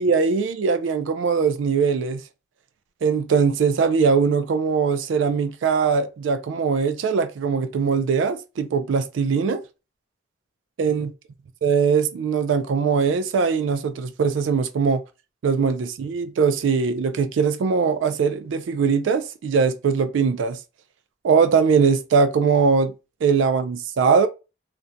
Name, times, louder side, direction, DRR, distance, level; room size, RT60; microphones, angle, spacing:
voice 1, 0.0-2.2 3.0-9.6 10.8-11.1 11.6-15.0 15.4-20.6 21.2-22.9 23.2-24.3, right 5 dB, 80° right, 0.3 m, -21 dB
2.5 x 2.1 x 2.6 m
head